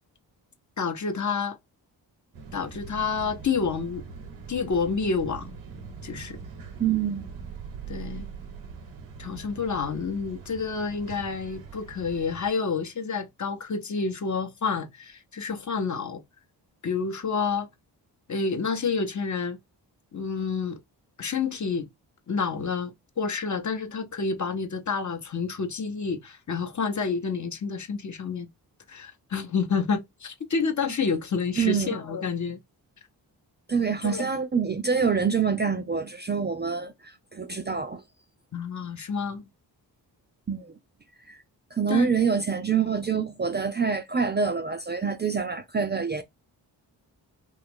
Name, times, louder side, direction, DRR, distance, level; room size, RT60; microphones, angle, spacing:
voice 1, 0.8-1.6 2.5-4.0 4.5-5.5 6.0-6.4 7.9-8.3 9.2-16.2 16.8-17.7 18.3-19.6 20.1-20.8 21.2-21.9 22.3-28.5 28.9-32.6 34.0-34.2 38.5-39.4 41.9-42.1, left 5 dB, 40° left, 0.8 m, -29 dB
sound 1, 2.3-12.5, right 6 dB, 85° right, 0.8 m, -42 dB
voice 2, 6.8-7.2 31.6-31.9 33.7-38.0 40.5-40.7 41.3-41.4 41.7-46.2, right 6 dB, 25° right, 0.4 m, -26 dB
2.9 x 2.3 x 3.5 m
supercardioid pair, 40°, 46 cm